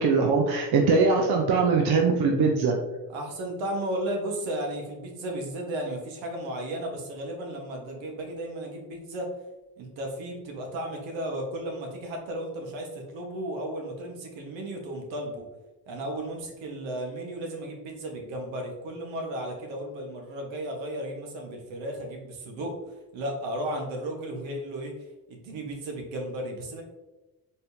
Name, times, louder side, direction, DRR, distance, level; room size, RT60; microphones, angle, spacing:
voice 1, 0.0-2.8, right 4 dB, 55° right, 2 dB, 0.7 m, -22 dB
voice 2, 3.1-9.3 9.8-15.5 15.9-24.9 25.3-26.8, right 1 dB, 75° right, 2 dB, 1.2 m, -34 dB
4.2 x 3.6 x 2.6 m, 1.1 s
supercardioid pair, 70°, 47 cm